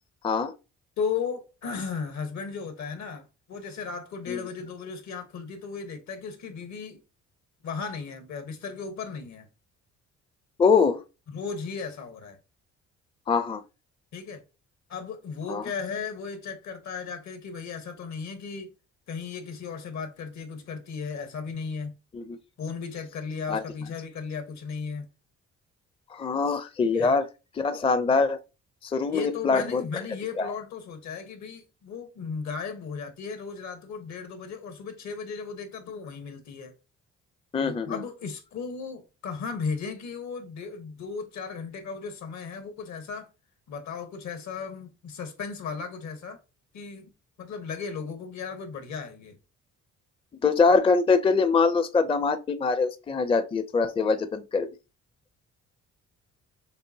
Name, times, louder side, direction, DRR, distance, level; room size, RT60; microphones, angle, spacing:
voice 1, 1.0-7.0 7.6-9.5 11.3-12.4 14.1-14.4 14.9-18.7 19.1-21.9 22.6-25.1 26.8-27.1 29.1-36.7 37.6-43.3 43.7-46.4 46.7-47.1 47.4-49.4, left 5 dB, 65° left, 1.2 m, -36 dB
voice 2, 10.6-11.0 13.3-13.6 15.5-15.6 22.1-22.4 23.5-23.6 26.1-27.2 27.6-28.4 28.8-29.8 30.4-30.5 37.5-38.0 50.4-54.7, left 4 dB, 20° left, 0.4 m, -23 dB
6.7 x 2.5 x 2.7 m
cardioid pair, 90°, 30 cm